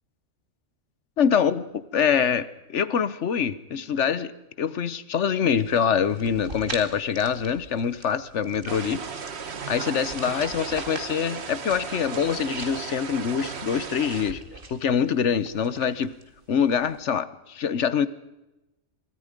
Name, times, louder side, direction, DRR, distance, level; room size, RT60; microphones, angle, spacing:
voice 1, 1.2-4.3 4.6-9.0 9.7-14.4 14.7-16.1 16.5-18.1, left 7 dB, 70° left, 15 dB, 1.2 m, -25 dB
sound 1, 5.5-17.0, right 2 dB, 45° right, 2.4 m, -44 dB
sound 2, 8.7-14.3, right 6 dB, 60° right, 1.5 m, -35 dB
25.5 x 23.5 x 5.2 m, 0.96 s
omnidirectional pair, 1.3 m